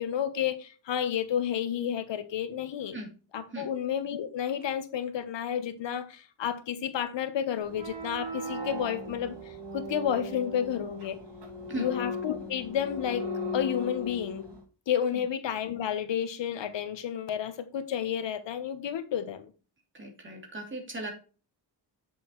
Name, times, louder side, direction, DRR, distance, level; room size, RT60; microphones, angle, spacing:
voice 1, 0.0-3.0 3.3-11.2 11.7-14.5 14.9-19.5, left 9 dB, 80° left, 1.2 m, -31 dB
sound 1, 7.6-14.6, left 1 dB, 70° right, 4.0 m, -37 dB
voice 2, 19.9-21.1, right 2 dB, 25° right, 2.8 m, -37 dB
7.8 x 6.8 x 3.1 m
wide cardioid pair, 150°, 43 cm